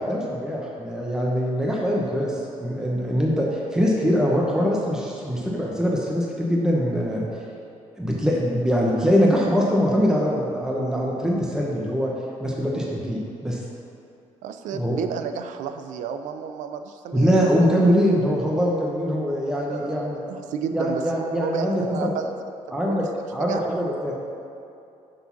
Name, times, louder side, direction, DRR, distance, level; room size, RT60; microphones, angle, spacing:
voice 1, 0.0-7.2 8.0-12.1 12.4-13.6 14.7-15.0 17.1-20.2 20.7-22.1 22.7-23.0 23.3-24.1, equal, 5° right, -3 dB, 1.0 m, -23 dB
voice 2, 14.4-17.5 19.5-20.0 20.3-22.3 22.7-23.1 23.4-23.6, right 7 dB, 90° right, 8 dB, 0.4 m, -32 dB
6.1 x 3.8 x 5.8 m, 2.6 s
cardioid pair, 100°, 12 cm